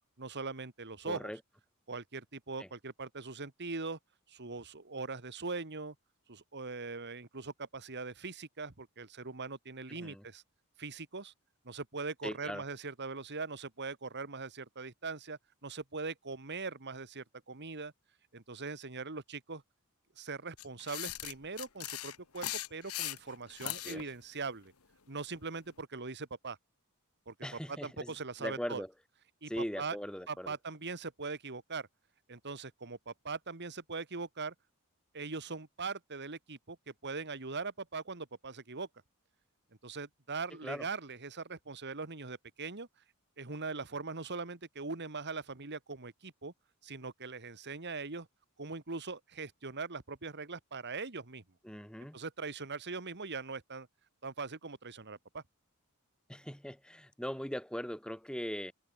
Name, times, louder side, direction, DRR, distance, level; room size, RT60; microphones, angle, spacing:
voice 1, 0.2-1.3 1.9-4.0 4.3-6.0 6.3-10.4 10.8-11.3 11.6-17.9 18.3-19.6 20.2-24.7 25.1-26.6 27.3-27.4 27.7-28.8 29.4-30.0 30.3-31.9 32.3-34.5 35.1-38.9 39.8-42.9 43.4-46.5 46.8-48.3 48.6-51.4 52.0-53.9 54.2-55.4, right 4 dB, 50° right, 2.0 m, -41 dB
voice 2, 1.0-1.4 2.6-2.7 9.9-10.2 12.2-12.6 23.6-24.0 27.4-28.1 28.4-28.9 29.5-30.5 40.6-40.8 51.6-52.2 56.3-58.7, equal, 5° left, 3.3 m, -40 dB
sound 1, 20.6-24.0, left 14 dB, 75° left, 1.6 m, -39 dB
head